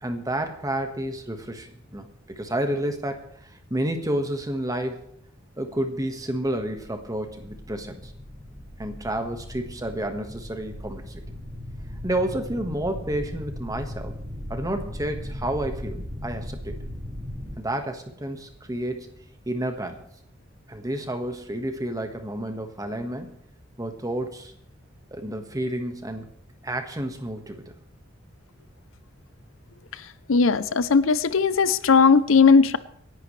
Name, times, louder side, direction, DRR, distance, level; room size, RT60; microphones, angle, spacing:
voice 1, 0.0-5.1 5.6-8.1 8.8-11.2 12.0-14.2 14.5-16.7 17.6-19.1 19.5-20.0 20.7-23.4 23.8-24.5 25.1-26.3 26.6-27.7, right 1 dB, 20° right, 5 dB, 1.5 m, -30 dB
sound 1, 6.7-17.6, left 1 dB, 55° right, 4.8 m, -38 dB
voice 2, 30.3-32.8, left 5 dB, 80° left, 15 dB, 0.6 m, -18 dB
27.0 x 11.0 x 3.3 m, 0.67 s
head